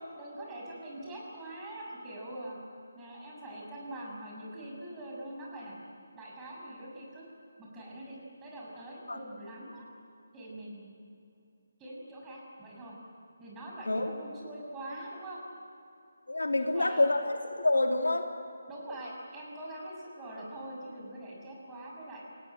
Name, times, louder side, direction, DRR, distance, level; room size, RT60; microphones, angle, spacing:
voice 1, 0.2-2.6 2.9-5.8 6.1-7.3 7.6-9.8 10.3-10.9 11.8-12.9 13.4-15.4 16.5-17.1 18.7-22.2, right 1 dB, 15° right, -4 dB, 6.8 m, -43 dB
voice 2, 16.3-18.3, left 2 dB, 80° left, 4 dB, 2.7 m, -27 dB
29.0 x 18.0 x 9.2 m, 2.6 s
figure-of-eight pair, 150°, 0 cm